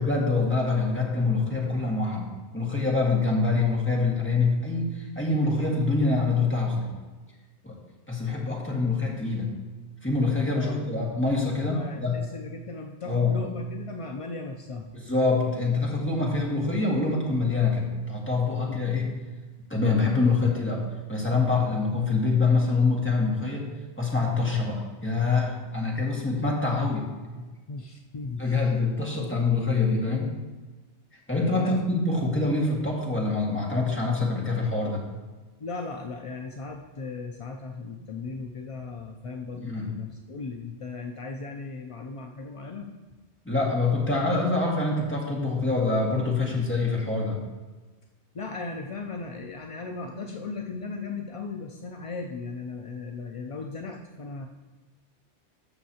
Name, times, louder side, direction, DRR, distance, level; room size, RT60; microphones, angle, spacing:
voice 1, 0.0-6.9 7.6-7.8 8.1-9.5 10.0-12.2 13.1-13.4 14.9-19.1 19.7-23.7 24.0-27.0 27.4-27.5 28.4-30.3 31.3-35.0 39.5-39.9 43.5-47.4, left 3 dB, 10° left, -4 dB, 1.8 m, -25 dB
voice 2, 11.7-14.9 18.6-18.7 27.7-28.7 31.5-31.8 35.6-42.9 48.3-54.5, left 3 dB, 50° left, 2 dB, 0.4 m, -37 dB
14.0 x 6.4 x 2.8 m, 1.3 s
omnidirectional pair, 1.2 m